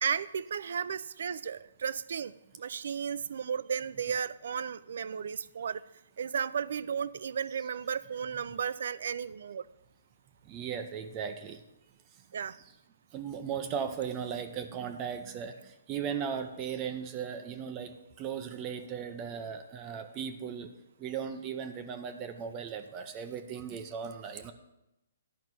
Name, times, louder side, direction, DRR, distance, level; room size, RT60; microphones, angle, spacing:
voice 1, 0.0-5.8 6.2-9.6 12.3-12.6, right 7 dB, 65° right, 18 dB, 0.4 m, -34 dB
voice 2, 10.5-11.6 13.1-20.7 21.0-24.5, right 7 dB, 25° right, 8 dB, 0.6 m, -37 dB
11.0 x 5.4 x 6.1 m, 0.89 s
hypercardioid pair, 160°, 0 cm